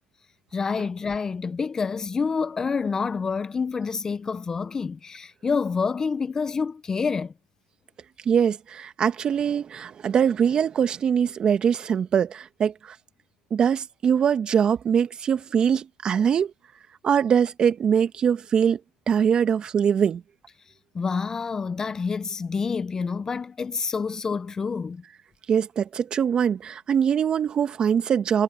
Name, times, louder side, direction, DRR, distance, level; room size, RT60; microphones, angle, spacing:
voice 1, 0.5-7.3 20.9-25.0, left 5 dB, 25° left, 0.8 m, -27 dB
voice 2, 8.3-13.0 13.5-16.5 17.0-18.8 19.1-20.2 25.5-28.4, right 7 dB, 35° right, 1.7 m, -22 dB
supercardioid pair, 100°, 3 cm